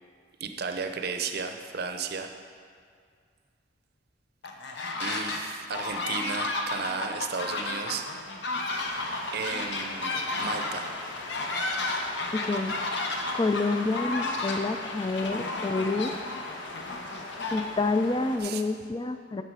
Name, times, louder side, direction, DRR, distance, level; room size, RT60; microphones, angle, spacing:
voice 1, 0.4-2.3 5.0-8.2 9.3-10.9 18.4-18.6, right 5 dB, 55° right, 6 dB, 0.6 m, -34 dB
sound 1, 4.4-5.4 5.7-18.0, left 2 dB, 65° left, 0.9 m, -33 dB
sound 2, 8.7-18.4, left 2 dB, 80° left, 1.0 m, -40 dB
voice 2, 12.3-12.8 13.3-16.1 17.5-19.4, left 3 dB, 25° left, 9 dB, 0.4 m, -28 dB
9.7 x 6.7 x 4.7 m, 2.1 s
head